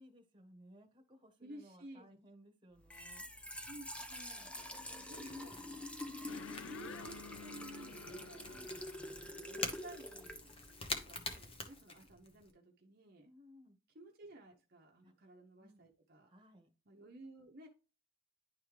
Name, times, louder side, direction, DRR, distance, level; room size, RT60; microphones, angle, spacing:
voice 1, 0.0-3.3 8.4-8.8 13.2-13.8 15.0-15.1 15.6-15.9 16.3-16.7, equal, 20° right, 1.3 m, -61 dB
voice 2, 1.4-2.2 3.7-5.8 6.4-8.5 9.3-13.3 13.9-16.3 16.9-17.7, right 1 dB, 45° right, 0.9 m, -54 dB
Trickle dribble / Fill (with liquid), 2.8-11.5, left 1 dB, 5° left, 0.5 m, -47 dB
Crackle / Crack, 3.0-12.5, left 3 dB, 25° left, 1.0 m, -48 dB
sound 1, 6.3-11.2, left 5 dB, 65° left, 0.4 m, -53 dB
10.5 x 3.6 x 3.1 m
head